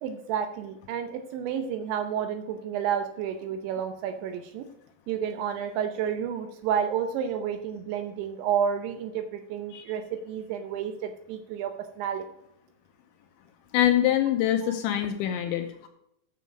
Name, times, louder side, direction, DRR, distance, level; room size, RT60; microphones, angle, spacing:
voice 1, 0.0-4.7 5.1-12.3 14.6-14.8, right 8 dB, 80° right, 7 dB, 2.8 m, -30 dB
voice 2, 13.7-15.9, left 11 dB, 85° left, 5 dB, 2.8 m, -24 dB
9.2 x 7.0 x 5.0 m, 0.77 s
omnidirectional pair, 5.8 m